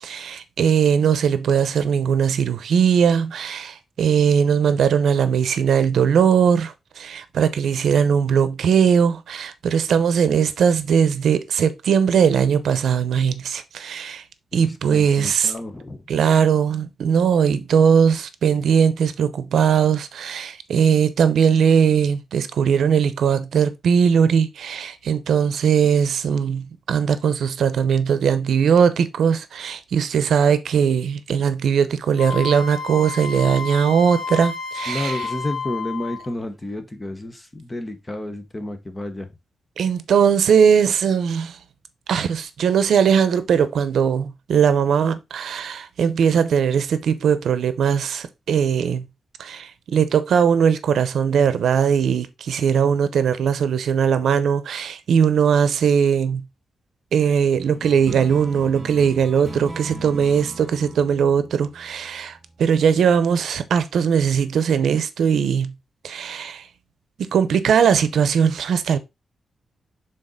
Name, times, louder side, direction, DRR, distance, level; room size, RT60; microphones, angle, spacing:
voice 1, 0.0-14.2 14.5-15.5 16.1-35.3 39.8-41.6 42.1-49.1 49.4-56.4 57.1-65.7 66.0-66.7 67.2-69.0, right 7 dB, 80° right, 0.6 m, -19 dB
voice 2, 14.5-16.0 34.9-39.3, left 1 dB, 15° left, 0.8 m, -31 dB
Wind instrument woodwind instrument, 32.2-36.3, left 5 dB, 70° left, 1.8 m, -30 dB
sound 1, 57.6-62.5, right 2 dB, 25° right, 2.3 m, -38 dB
6.5 x 3.9 x 3.8 m
wide cardioid pair, 170°, 0 cm